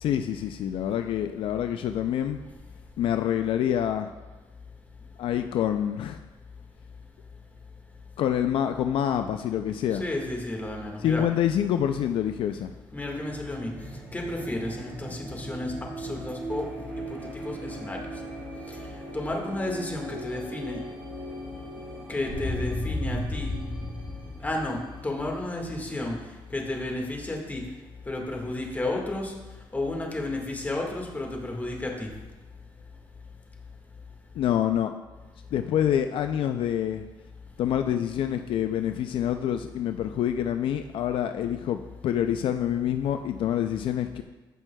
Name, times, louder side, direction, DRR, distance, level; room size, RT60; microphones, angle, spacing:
voice 1, 0.0-2.4 3.0-4.1 5.2-6.2 8.2-10.0 11.0-12.7 34.4-34.9 35.5-37.0 37.6-44.2, left 10 dB, 70° left, 7 dB, 0.4 m, -26 dB
voice 2, 9.9-11.2 12.9-13.7 14.1-16.6 17.4-18.0 18.7-18.8 19.1-20.8 22.1-23.5 24.4-24.8 25.0-26.2 26.5-27.6 28.1-29.3 29.7-32.1, left 2 dB, 20° left, 0 dB, 1.6 m, -32 dB
sound 1, 13.1-26.5, equal, 10° right, 2.1 m, -37 dB
14.5 x 6.1 x 2.2 m, 1.2 s
cardioid pair, 105°, 9 cm